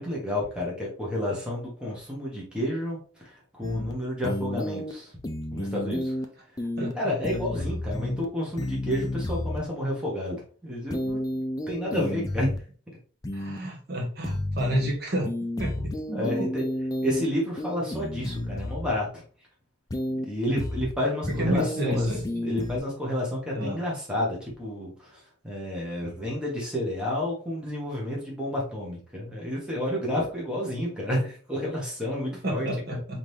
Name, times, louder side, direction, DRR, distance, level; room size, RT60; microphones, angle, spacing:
voice 1, 0.0-5.2 5.5-6.2 6.8-11.2 11.7-12.6 16.1-16.6 17.0-19.2 20.1-33.0, left 1 dB, 5° right, -4 dB, 1.3 m, -30 dB
sound 1, 3.6-3.9 4.2-4.9 5.2-6.2 6.6-6.9 7.2-8.2 8.6-9.6 10.9-12.6 13.2-13.6 14.2-14.9 15.2-17.2 17.6-18.9 19.9-20.2 20.6-20.9 21.2-22.8, left 1 dB, 20° left, 0.4 m, -31 dB
voice 2, 6.8-7.1 13.3-15.3 15.6-16.5 21.4-22.2 23.5-23.8 32.4-33.2, equal, 50° right, -1 dB, 1.2 m, -30 dB
4.1 x 3.8 x 3.2 m, 0.42 s
head